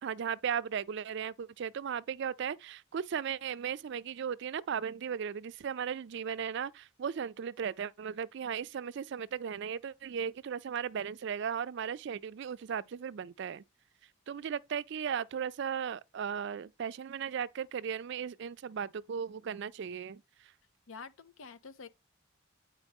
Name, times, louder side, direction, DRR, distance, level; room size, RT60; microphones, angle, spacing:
voice 1, 0.0-13.6 14.3-20.2, right 7 dB, 60° right, 0.4 m, -36 dB
voice 2, 20.9-21.9, left 5 dB, 80° left, 0.7 m, -47 dB
9.0 x 4.5 x 3.5 m
head